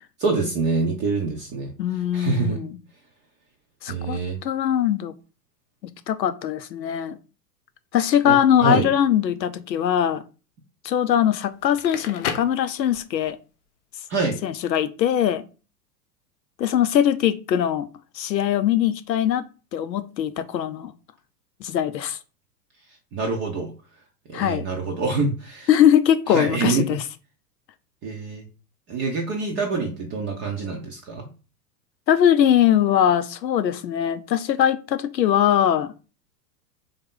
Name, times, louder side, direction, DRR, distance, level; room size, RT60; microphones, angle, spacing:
voice 1, 0.2-1.7 2.1-2.6 3.9-4.4 8.3-8.9 14.1-14.4 23.1-23.7 24.3-25.7 26.3-26.9 28.0-28.4 28.9-31.3, right 4 dB, 25° right, 0.5 m, -25 dB
voice 2, 1.8-2.8 3.8-5.2 5.8-7.2 7.9-10.2 10.8-13.4 14.4-15.4 16.6-17.9 18.1-19.4 19.7-20.9 21.6-22.2 24.3-24.7 25.7-27.0 32.1-35.9, left 10 dB, 85° left, 0.6 m, -21 dB
Crackle, 11.6-13.3, left 8 dB, 50° left, 0.6 m, -32 dB
3.4 x 2.7 x 3.6 m
figure-of-eight pair, 95°, 49 cm